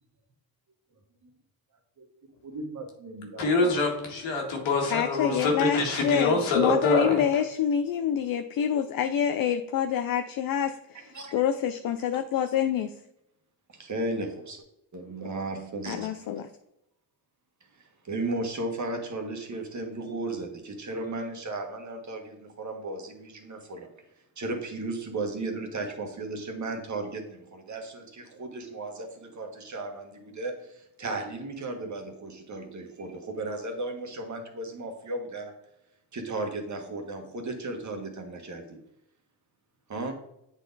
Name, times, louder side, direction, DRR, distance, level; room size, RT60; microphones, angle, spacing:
voice 1, 2.4-3.8 10.9-11.3 13.7-14.6 14.9-16.5 17.7-23.9 24.4-35.5 36.1-38.8 39.9-40.1, right 2 dB, 40° right, 3 dB, 1.6 m, -35 dB
voice 2, 3.4-7.2, left 3 dB, 90° left, 1 dB, 1.9 m, -25 dB
voice 3, 4.9-12.9 15.9-16.5, left 9 dB, 50° left, 8 dB, 0.5 m, -27 dB
8.0 x 4.2 x 4.0 m, 0.82 s
cardioid pair, 75°, 44 cm